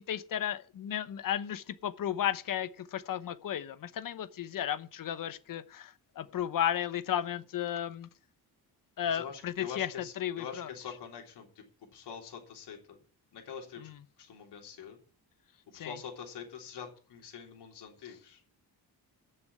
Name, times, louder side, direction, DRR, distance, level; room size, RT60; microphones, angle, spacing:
voice 1, 0.0-8.1 9.0-10.7 13.8-14.0 15.7-16.0, left 10 dB, 55° left, 0.9 m, -34 dB
voice 2, 9.1-11.6 11.9-13.0 13.3-13.9 14.2-15.0 15.7-18.4, left 7 dB, 80° left, 3.5 m, -45 dB
10.0 x 6.9 x 8.3 m
cardioid pair, 150°, 40 cm